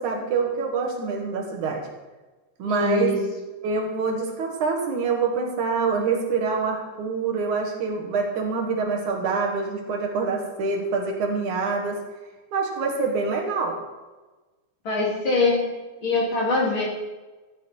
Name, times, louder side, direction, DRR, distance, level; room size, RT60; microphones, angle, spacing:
voice 1, 0.0-1.9 2.6-3.2 3.6-12.0 12.5-13.8, right 4 dB, 75° right, 2 dB, 3.0 m, -25 dB
voice 2, 2.6-3.2 14.9-15.6 16.0-16.8, left 3 dB, 40° left, -5 dB, 3.8 m, -23 dB
13.5 x 9.8 x 4.5 m, 1.2 s
omnidirectional pair, 3.5 m